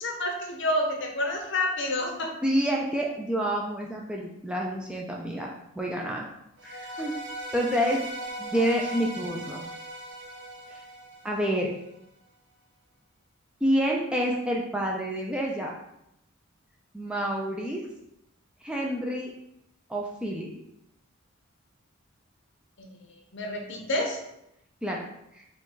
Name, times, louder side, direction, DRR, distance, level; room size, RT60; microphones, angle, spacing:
voice 1, 0.0-2.3 22.8-22.9 23.3-24.2, left 1 dB, 55° left, 2 dB, 0.7 m, -29 dB
voice 2, 2.4-6.3 6.6-7.2 7.5-8.0 8.4-9.6 11.2-11.7 13.6-15.7 16.9-17.9 18.6-19.3 19.9-20.5 24.8-25.0 25.3-25.4, equal, 5° right, -2 dB, 0.4 m, -28 dB
sound 1, 6.6-11.8, right 1 dB, 55° right, 0.9 m, -39 dB
4.9 x 2.3 x 3.8 m, 0.81 s
head